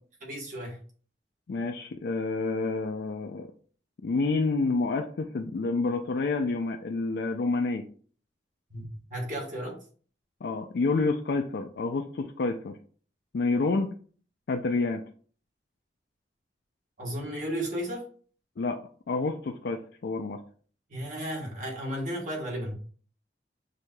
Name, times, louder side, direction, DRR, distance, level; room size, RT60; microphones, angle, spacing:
voice 1, 0.2-0.8 8.7-9.8 17.0-18.1 20.9-22.7, equal, 45° right, -1 dB, 1.2 m, -34 dB
voice 2, 1.5-3.5 4.0-7.8 10.4-12.7 13.3-13.9 14.5-15.0 18.6-18.8 19.1-20.4, left 3 dB, 65° left, 4 dB, 0.4 m, -28 dB
6.2 x 2.8 x 2.2 m, 0.43 s
head